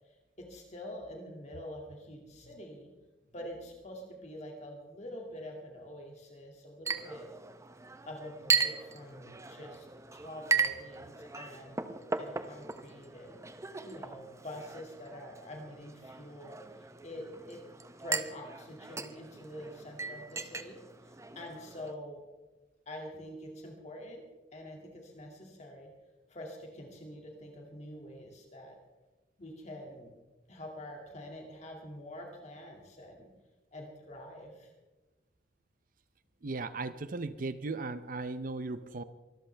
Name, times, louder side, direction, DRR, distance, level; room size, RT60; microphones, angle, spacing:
voice 1, 0.0-2.9 3.3-7.3 8.1-13.4 13.8-17.6 18.0-22.2 22.9-24.2 24.5-25.9 26.3-28.8 29.4-30.1 30.5-33.3 33.7-34.7, left 1 dB, 40° left, 1 dB, 2.3 m, -46 dB
Chink clink, 6.8-21.9, right 5 dB, 15° right, 0.7 m, -37 dB
voice 2, 36.4-39.0, right 3 dB, 50° right, 13 dB, 0.6 m, -37 dB
24.5 x 13.5 x 3.4 m, 1.2 s
head